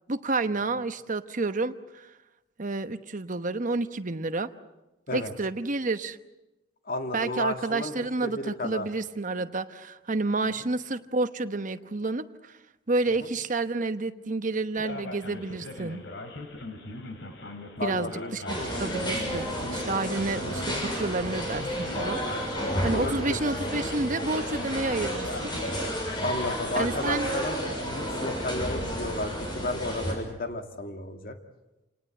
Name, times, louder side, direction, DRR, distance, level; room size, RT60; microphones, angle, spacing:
voice 1, 0.1-2.1 2.6-4.5 5.1-6.2 7.1-12.6 12.9-16.0 17.8-22.2 22.8-25.5 26.7-27.3, right 3 dB, 45° right, 10 dB, 1.0 m, -30 dB
voice 2, 6.9-7.9 8.2-8.9 13.2-13.3 17.8-18.3 18.6-18.9 22.9-23.4 26.2-31.4, left 2 dB, 55° left, 5 dB, 2.3 m, -33 dB
Male speech man speaking, 14.8-26.7, left 2 dB, 80° left, 3.1 m, -41 dB
sound 1, 18.5-30.1, equal, 25° left, 6.8 m, -31 dB
28.0 x 19.0 x 7.8 m, 1.0 s
head